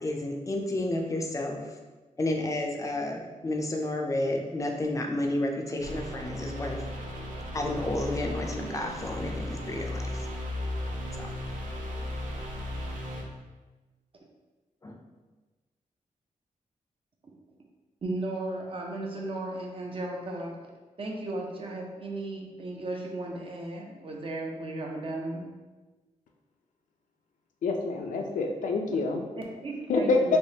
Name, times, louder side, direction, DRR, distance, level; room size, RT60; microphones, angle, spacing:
voice 1, 0.0-1.8 2.2-6.8 7.5-10.3 11.2-11.3 14.8-15.0, left 1 dB, 25° left, 2 dB, 0.4 m, -31 dB
sound 1, 5.8-13.2, left 1 dB, 85° right, 0.6 m, -35 dB
voice 2, 18.0-20.5 21.0-25.4 28.9-29.0 29.4-30.4, right 2 dB, 45° right, 0 dB, 0.6 m, -35 dB
voice 3, 27.6-29.2 29.9-30.4, left 3 dB, 85° left, 2 dB, 0.5 m, -26 dB
3.4 x 3.0 x 2.8 m, 1.2 s
wide cardioid pair, 130°, 13 cm